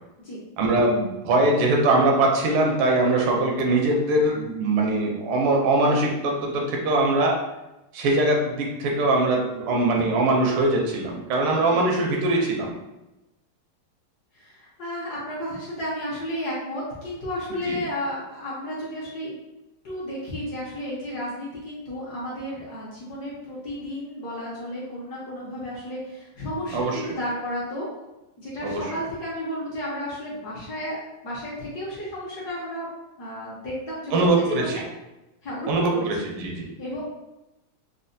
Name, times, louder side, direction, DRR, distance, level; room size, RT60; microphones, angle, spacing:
voice 1, 0.6-7.4 7.9-12.7 17.6-17.8 26.7-27.1 28.6-28.8 34.1-34.8 35.7-36.7, right 2 dB, 80° right, 0 dB, 1.5 m, -22 dB
voice 2, 14.3-19.3 19.8-27.9 28.4-32.9 33.2-34.8 35.4-36.3 36.8-37.0, equal, 60° left, -6 dB, 1.2 m, -33 dB
4.2 x 2.1 x 2.6 m, 0.98 s
omnidirectional pair, 2.4 m